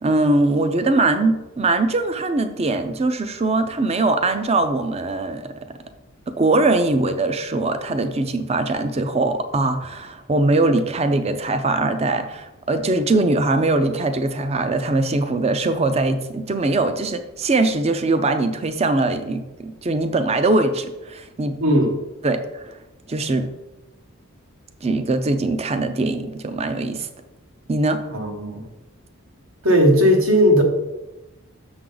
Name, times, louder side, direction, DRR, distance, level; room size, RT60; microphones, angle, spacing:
voice 1, 0.0-5.5 6.3-21.6 22.2-22.7 23.1-23.5 24.8-27.1 27.7-28.1, right 2 dB, 30° right, 9 dB, 0.5 m, -21 dB
voice 2, 21.6-21.9 28.1-28.7 29.6-30.6, equal, 70° right, 2 dB, 1.4 m, -16 dB
6.7 x 6.2 x 3.9 m, 1.0 s
head